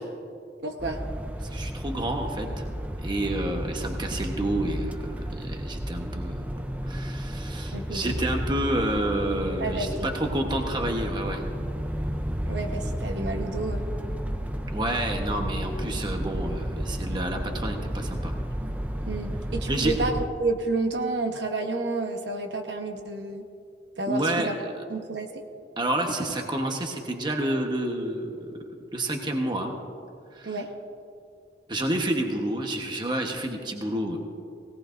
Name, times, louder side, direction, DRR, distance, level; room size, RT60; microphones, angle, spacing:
voice 1, 0.6-1.0 7.7-8.1 9.6-10.1 12.5-13.9 19.0-23.4 24.0-24.5 24.9-25.4 30.4-30.7, right 3 dB, 80° right, 4 dB, 1.1 m, -30 dB
sound 1, 0.8-20.3, equal, 10° right, 0.5 m, -32 dB
voice 2, 1.4-2.7 3.0-11.4 14.7-18.3 19.7-19.9 24.1-24.5 25.8-28.5 28.9-29.7 30.3-30.6 31.7-34.2, right 1 dB, 25° right, 2 dB, 1.1 m, -29 dB
19.5 x 18.0 x 2.6 m, 2.5 s
head